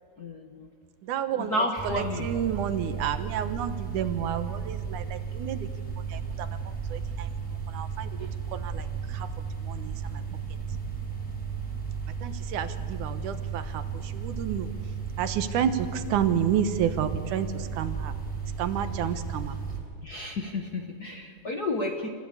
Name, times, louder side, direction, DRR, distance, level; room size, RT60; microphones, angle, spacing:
voice 1, 0.2-0.7 1.5-2.3 2.8-2.9 8.2-8.3 20.0-22.1, left 2 dB, 50° left, 3 dB, 1.1 m, -31 dB
voice 2, 1.0-5.7 6.1-6.6 6.9-7.3 7.7-9.3 9.6-10.2 12.2-14.7 15.2-18.2 18.6-19.6, right 8 dB, 90° right, 10 dB, 2.6 m, -30 dB
sound 1, 1.8-19.8, right 6 dB, 5° left, 5.4 m, -34 dB
28.5 x 15.0 x 8.4 m, 2.2 s
omnidirectional pair, 3.4 m